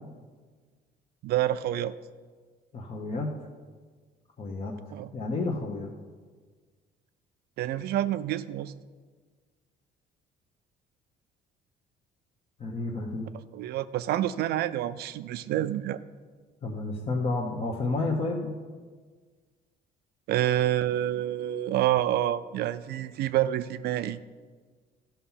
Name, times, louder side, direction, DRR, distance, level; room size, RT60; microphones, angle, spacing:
voice 1, 1.2-1.9 4.9-5.1 7.6-8.7 13.5-16.0 20.3-24.2, right 12 dB, 70° right, 13 dB, 0.4 m, -28 dB
voice 2, 2.7-3.3 4.4-4.8 5.1-5.9 12.6-13.3 16.6-18.5, left 3 dB, 35° left, -2 dB, 1.1 m, -30 dB
13.0 x 5.8 x 5.7 m, 1.5 s
cardioid pair, 110°, 17 cm